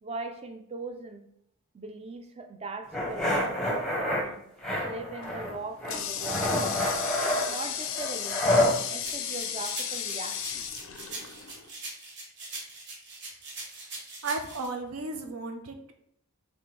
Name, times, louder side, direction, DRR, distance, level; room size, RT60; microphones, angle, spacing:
voice 1, 0.0-1.3 1.7-4.4 4.9-6.7 7.2-10.7, right 3 dB, 25° right, 6 dB, 0.4 m, -40 dB
sound 1, 2.9-4.2 4.6-5.5 5.8-8.7, left 1 dB, ahead, 0.7 m, -28 dB
Water tap faucet, 5.2-11.7, left 9 dB, 60° left, 0.4 m, -35 dB
sound 2, 9.0-14.7, right 2 dB, 50° right, 0.9 m, -41 dB
voice 2, 14.2-15.9, right 3 dB, 75° right, 5 dB, 0.6 m, -34 dB
4.2 x 3.3 x 3.2 m, 0.74 s
head